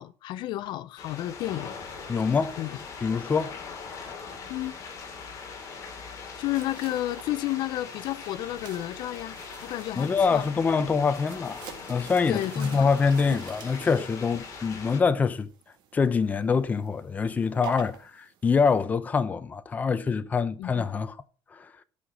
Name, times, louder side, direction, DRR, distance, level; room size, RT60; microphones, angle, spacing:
voice 1, 0.0-1.7 2.6-2.8 4.5-4.8 6.4-9.4 9.6-10.5 12.3-12.9 20.6-20.7, left 14 dB, 60° left, 0.6 m, -31 dB
sound 1, 1.0-15.0, left 5 dB, 40° left, 2.5 m, -41 dB
voice 2, 2.1-2.6 3.0-3.6 10.0-15.5 15.9-21.2 21.5-21.7, left 5 dB, 20° left, 0.6 m, -25 dB
sound 2, 6.5-18.8, right 8 dB, 60° right, 1.9 m, -47 dB
11.5 x 5.6 x 6.0 m
cardioid pair, 175°, 9 cm